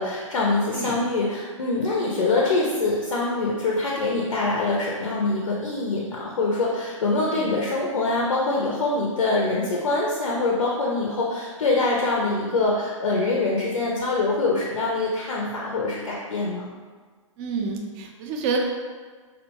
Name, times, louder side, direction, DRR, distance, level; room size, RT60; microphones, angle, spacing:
voice 1, 0.0-16.7, left 3 dB, 80° left, -3 dB, 0.4 m, -24 dB
voice 2, 17.4-18.6, right 5 dB, 30° right, 1 dB, 0.3 m, -29 dB
2.6 x 2.1 x 2.8 m, 1.5 s
figure-of-eight pair, 115°, 17 cm